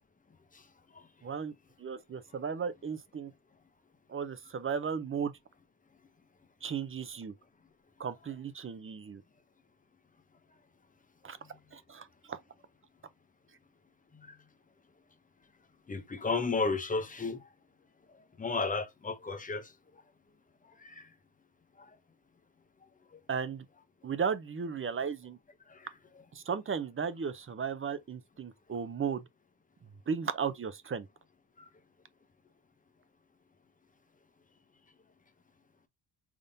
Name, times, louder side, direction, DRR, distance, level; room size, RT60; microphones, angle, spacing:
voice 1, 1.2-1.5 1.8-3.3 4.1-5.3 6.6-7.3 8.0-9.2 11.2-11.4 11.7-12.4 23.3-23.7 24.0-25.4 26.3-29.2 30.1-31.1, right 6 dB, 30° right, 0.5 m, -35 dB
voice 2, 15.9-17.5 18.4-19.7 20.8-21.1 21.8-21.9 23.1-23.2 25.7-25.9 31.6-31.7, left 4 dB, 20° left, 0.7 m, -33 dB
5.1 x 3.6 x 2.7 m
wide cardioid pair, 155°, 46 cm